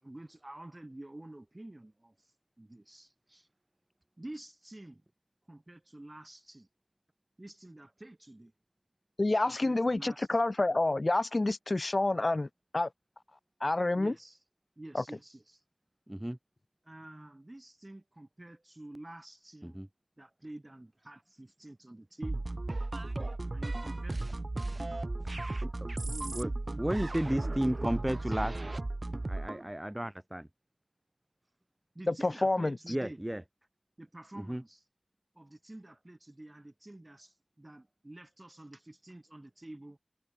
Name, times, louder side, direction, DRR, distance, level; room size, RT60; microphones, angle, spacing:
voice 1, 0.0-2.3 2.6-3.5 4.2-5.1 5.5-6.7 7.4-8.5 9.5-10.4 13.9-14.4 14.8-15.6 16.8-19.8 20.2-22.5 23.5-24.3 26.1-27.1 27.3-28.2 31.9-33.2 34.0-34.8 35.3-40.0, right 1 dB, 35° right, 7.0 m, -48 dB
voice 2, 9.2-12.5 12.7-12.9 13.6-14.1 14.9-15.0 32.1-32.8, left 2 dB, 60° left, 1.8 m, -28 dB
voice 3, 16.1-16.4 19.6-19.9 25.6-25.9 26.3-26.5 26.8-28.5 29.3-30.5 32.9-33.4 34.4-34.6, right 1 dB, 15° right, 2.6 m, -33 dB
sound 1, 22.2-29.7, right 2 dB, 60° right, 1.4 m, -35 dB
wide cardioid pair, 45°, 0 cm